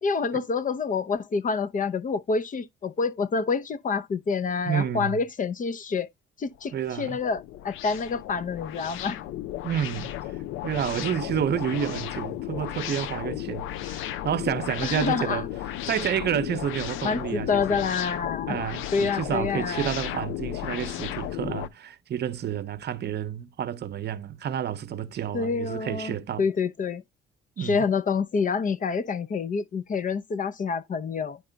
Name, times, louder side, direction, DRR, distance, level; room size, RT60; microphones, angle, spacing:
voice 1, 0.0-6.1 6.4-9.2 11.7-12.0 14.8-15.4 17.0-18.6 18.9-19.9 25.3-27.0 27.6-31.4, left 5 dB, 40° left, 0.7 m, -27 dB
voice 2, 4.7-5.2 6.7-7.2 9.6-15.5 15.9-17.9 18.5-26.4 27.6-27.8, right 9 dB, 55° right, 0.7 m, -30 dB
sound 1, 6.6-21.7, left 13 dB, 90° left, 0.5 m, -34 dB
9.6 x 3.3 x 3.9 m
cardioid pair, 90°, 20 cm